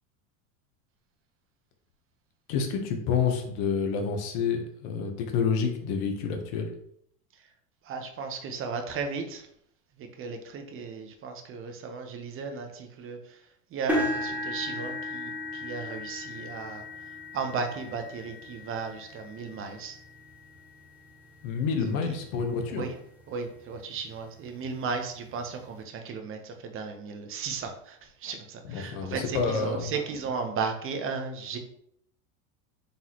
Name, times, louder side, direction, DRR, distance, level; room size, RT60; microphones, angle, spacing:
voice 1, 2.5-6.7 21.4-22.8 28.6-29.9, left 6 dB, 55° left, 4 dB, 1.0 m, -28 dB
voice 2, 7.8-9.5 10.0-13.4 13.7-16.8 17.3-20.0 22.7-22.9 23.3-31.6, right 5 dB, 30° right, 5 dB, 0.8 m, -35 dB
sound 1, 13.9-21.9 22.5-22.8 23.2-23.3 24.7-24.8, left 1 dB, 5° right, 0.9 m, -36 dB
4.0 x 3.7 x 3.0 m, 0.70 s
supercardioid pair, 110°, 42 cm